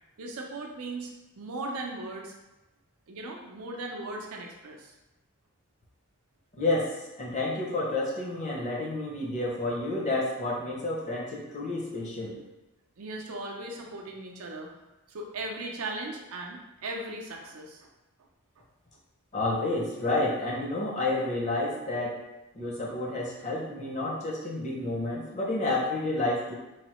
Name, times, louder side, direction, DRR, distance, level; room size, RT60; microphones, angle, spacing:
voice 1, 0.2-2.3 3.1-4.9 13.0-14.7 15.1-17.9, right 2 dB, 70° right, 1 dB, 0.5 m, -38 dB
voice 2, 6.6-6.9 7.2-12.4 19.3-22.2 22.5-26.5, left 2 dB, 30° left, -3 dB, 0.5 m, -30 dB
3.1 x 2.0 x 2.9 m, 1.0 s
head